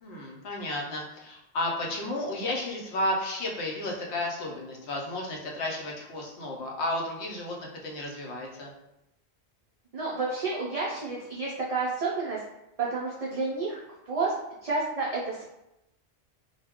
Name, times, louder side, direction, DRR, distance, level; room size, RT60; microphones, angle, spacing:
voice 1, 0.0-8.7, left 1 dB, 80° left, -1 dB, 0.9 m, -33 dB
voice 2, 9.9-12.4 12.8-14.3 14.6-15.5, right 3 dB, 60° right, -5 dB, 0.4 m, -30 dB
2.2 x 2.0 x 3.4 m, 0.90 s
omnidirectional pair, 1.1 m